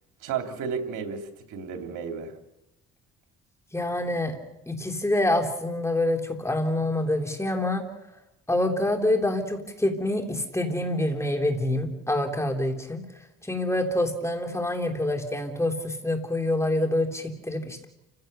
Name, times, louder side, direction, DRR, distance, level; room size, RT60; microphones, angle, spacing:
voice 1, 0.2-2.3, right 6 dB, 85° right, 5 dB, 3.0 m, -32 dB
voice 2, 3.7-4.4 4.7-7.8 8.5-13.1 13.4-17.9, left 1 dB, 10° left, 3 dB, 3.5 m, -26 dB
29.5 x 16.0 x 6.7 m, 0.94 s
cardioid pair, 90°, 30 cm